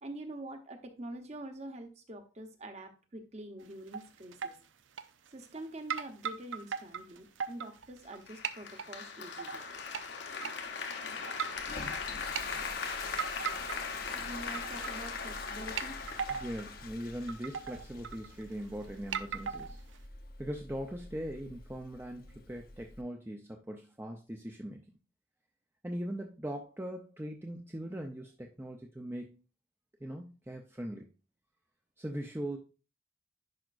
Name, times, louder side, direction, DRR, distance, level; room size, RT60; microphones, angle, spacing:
voice 1, 0.0-4.6 5.3-9.6 14.1-16.0, right 1 dB, 35° right, 6 dB, 1.0 m, -45 dB
sound 1, 3.6-4.1 4.3-4.6 5.0-5.6 5.9-8.2 8.4-8.9 9.4-10.0 10.4-10.5 11.3-11.7 12.1-12.4 13.2-14.0 14.3-15.0 15.3-15.4 15.8-16.6 17.0-17.1 17.3-18.6 19.1-20.0, right 7 dB, 90° right, 0.6 m, -37 dB
Applause, 8.3-17.3, left 5 dB, 70° left, 1.1 m, -40 dB
Toilet flush, 11.5-23.0, left 4 dB, 50° left, 0.8 m, -46 dB
voice 2, 16.3-19.8 20.4-24.8 25.8-29.4 30.0-31.1 32.0-32.6, equal, 10° right, 2 dB, 0.5 m, -40 dB
10.5 x 5.1 x 2.5 m, 0.32 s
head